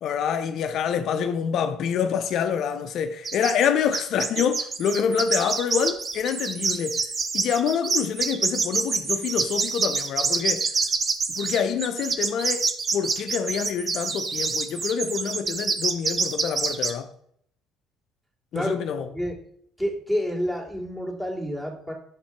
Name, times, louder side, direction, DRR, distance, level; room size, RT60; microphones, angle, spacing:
voice 1, 0.0-7.0 7.3-10.7 11.4-17.1 18.5-19.1, left 7 dB, 60° left, 0.5 m, -26 dB
sound 1, 3.2-3.7 3.9-16.9, right 4 dB, 40° right, 1.0 m, -26 dB
voice 2, 19.8-21.9, equal, 10° right, 2.6 m, -28 dB
6.6 x 4.2 x 4.5 m
hypercardioid pair, 65°, 0 cm